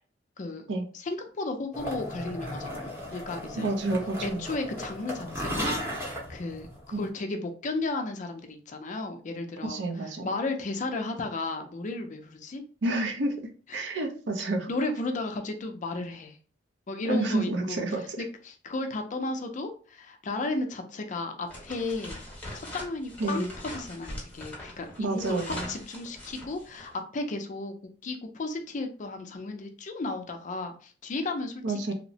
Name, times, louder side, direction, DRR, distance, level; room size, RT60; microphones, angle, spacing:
voice 1, 0.9-3.7 4.2-9.8 10.2-12.6 13.7-13.8 14.7-16.4 16.9-17.8 18.2-22.2 22.5-31.9, left 2 dB, 45° left, 5 dB, 0.4 m, -34 dB
sound 1, 1.7-7.1, equal, 15° right, 0.8 m, -36 dB
voice 2, 3.6-4.4 6.9-7.0 9.6-10.3 12.8-13.3 13.7-14.7 17.1-18.2 23.2-23.5 25.0-25.7 31.6-31.9, right 2 dB, 70° right, 3 dB, 0.5 m, -29 dB
sound 2, 21.5-27.0, left 1 dB, 10° left, 1.0 m, -42 dB
2.8 x 2.0 x 2.7 m, 0.40 s
head